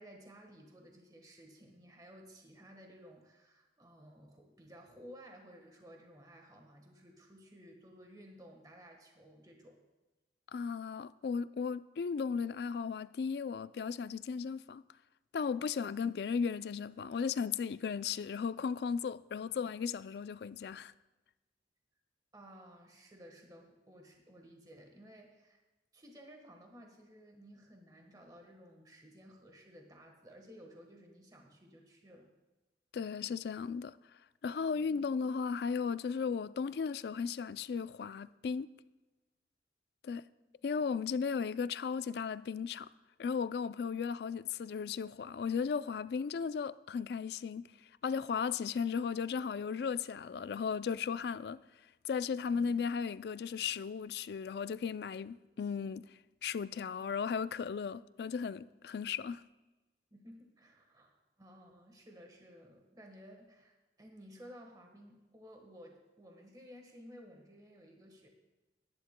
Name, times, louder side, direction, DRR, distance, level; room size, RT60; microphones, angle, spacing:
voice 1, 0.0-9.8 22.3-25.6 25.9-32.3 34.7-34.9 60.1-68.3, equal, 20° right, 1.3 m, -55 dB
voice 2, 10.5-14.8 15.3-20.9 32.9-34.0 34.4-38.7 40.0-40.3 40.6-42.9 43.2-47.7 48.0-51.6 52.0-56.1 56.4-59.4, left 6 dB, 65° left, 0.3 m, -36 dB
21.0 x 10.5 x 2.2 m
head